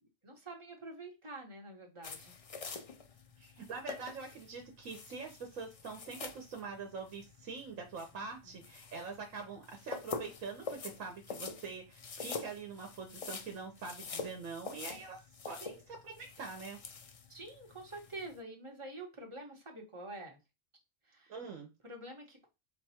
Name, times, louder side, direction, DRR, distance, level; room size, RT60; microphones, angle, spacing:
voice 1, 0.2-2.3 8.2-8.6 17.3-20.4 21.0-21.3 21.8-22.5, right 2 dB, 25° right, 1 dB, 1.1 m, -47 dB
sound 1, 2.0-18.4, left 5 dB, 65° left, 0.3 m, -46 dB
voice 2, 3.4-16.8 21.3-21.7, right 4 dB, 90° right, 3 dB, 1.2 m, -44 dB
4.5 x 2.3 x 4.2 m, 0.26 s
omnidirectional pair, 1.3 m